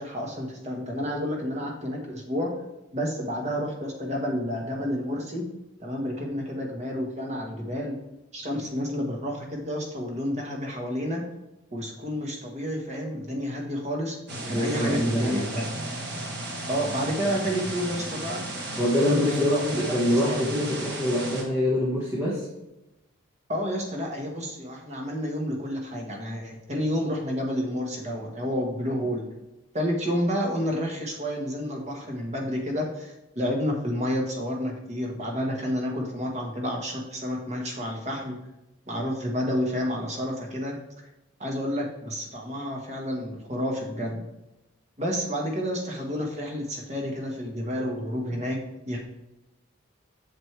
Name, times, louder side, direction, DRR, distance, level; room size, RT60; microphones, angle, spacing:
voice 1, 0.0-2.5 2.9-5.4 5.8-8.0 8.3-11.2 11.7-14.2 14.4-15.7 16.7-18.5 19.1-20.0 20.3-20.5 23.5-29.2 29.7-38.4 38.9-40.8 41.4-44.2 45.0-48.6 48.8-49.0, equal, 35° right, 0 dB, 1.5 m, -30 dB
sound 1, 14.3-21.4, right 2 dB, 55° right, 1.5 m, -34 dB
voice 2, 14.5-15.5 18.8-22.5, left 1 dB, 15° right, -6 dB, 1.5 m, -25 dB
7.9 x 6.7 x 3.4 m, 0.94 s
head